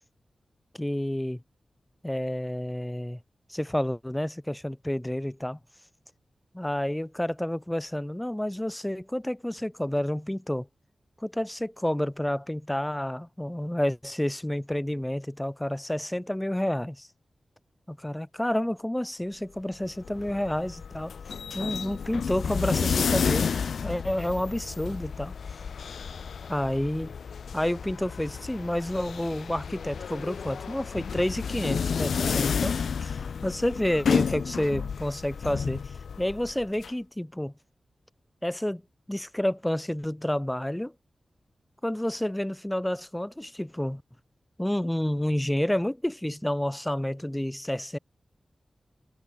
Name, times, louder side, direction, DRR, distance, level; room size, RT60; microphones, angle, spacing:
voice 1, 0.7-1.4 2.0-3.2 3.5-5.6 6.5-10.7 11.2-17.1 18.0-21.1 21.5-23.5 23.8-25.3 26.5-27.1 27.5-32.8 33.0-35.9 36.2-37.5 38.4-38.8 39.1-40.9 41.8-44.0 44.6-48.0, left 1 dB, 10° left, 1.5 m, -29 dB
sound 1, 19.8-36.9, left 6 dB, 85° left, 1.7 m, -31 dB
cardioid pair, 40°, 0 cm